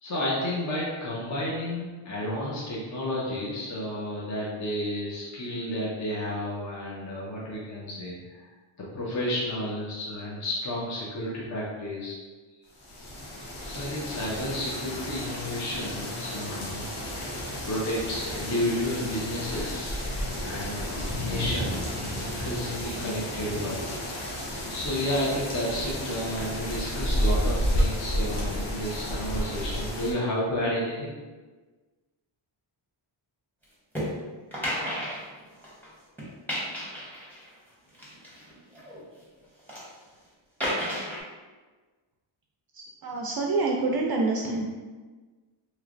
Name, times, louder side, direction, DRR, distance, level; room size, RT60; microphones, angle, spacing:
voice 1, 0.0-8.5 8.8-12.2 13.6-16.9 17.6-20.1 20.4-24.3 24.7-31.1, left 1 dB, 35° left, -6 dB, 0.7 m, -31 dB
sound 1, 12.8-30.1, equal, 85° left, 1.0 m, -31 dB
sound 2, 33.9-34.1 34.5-35.9 36.2-37.5 37.9-39.0 39.4-39.9 40.6-41.2, equal, 5° left, 1.0 m, -32 dB
voice 2, 43.0-44.6, right 3 dB, 50° right, 0 dB, 0.5 m, -26 dB
3.1 x 3.0 x 2.5 m, 1.3 s
cardioid pair, 110°, 49 cm